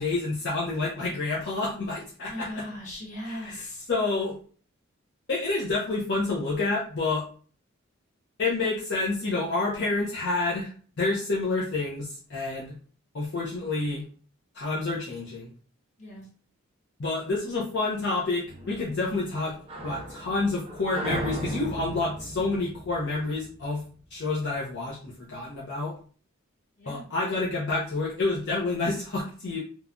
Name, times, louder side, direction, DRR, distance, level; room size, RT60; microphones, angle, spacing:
voice 1, 0.0-2.5 3.3-3.6 3.9-4.4 5.3-7.2 8.4-10.7 11.0-12.8 13.1-14.0 14.5-15.5 17.0-19.5 19.8-23.8 24.1-25.9 26.9-29.6, left 3 dB, 55° left, -4 dB, 0.5 m, -28 dB
voice 2, 2.3-3.9 16.0-16.3 26.8-27.0, left 1 dB, 35° left, -3 dB, 1.0 m, -38 dB
sound 1, 18.5-23.9, right 1 dB, 25° right, 0.5 m, -37 dB
3.0 x 2.2 x 2.5 m, 0.42 s
head